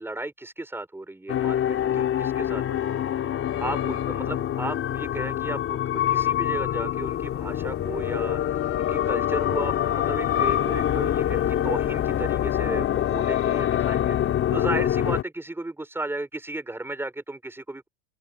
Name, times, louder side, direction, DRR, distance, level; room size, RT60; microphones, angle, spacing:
voice 1, 0.0-3.0 3.6-8.4 8.7-14.1 14.5-17.9, right 2 dB, 5° right, 5.9 m, -34 dB
sound 1, 1.3-15.2, left 11 dB, 35° left, 4.3 m, -25 dB
supercardioid pair, 135°, 37 cm